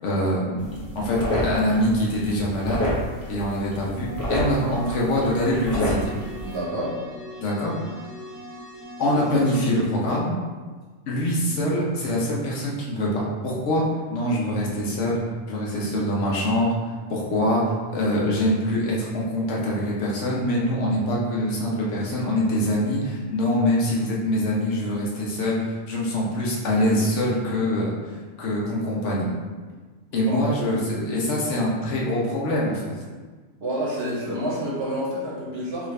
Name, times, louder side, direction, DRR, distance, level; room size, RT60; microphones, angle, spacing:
voice 1, 0.0-2.8 3.3-6.1 7.4-7.8 9.0-10.4 11.1-13.8 14.1-15.2 15.5-16.7 17.1-17.6 17.9-29.3 30.1-32.8, left 1 dB, 65° left, -4 dB, 1.0 m, -24 dB
sound 1, 0.6-6.6, left 1 dB, 15° left, 0.7 m, -30 dB
sound 2, 4.0-9.8, equal, 40° right, 0.6 m, -40 dB
voice 2, 6.4-7.0 30.2-30.5 33.6-35.9, equal, 55° right, -5 dB, 0.9 m, -28 dB
3.6 x 2.5 x 3.1 m, 1.4 s
omnidirectional pair, 1.4 m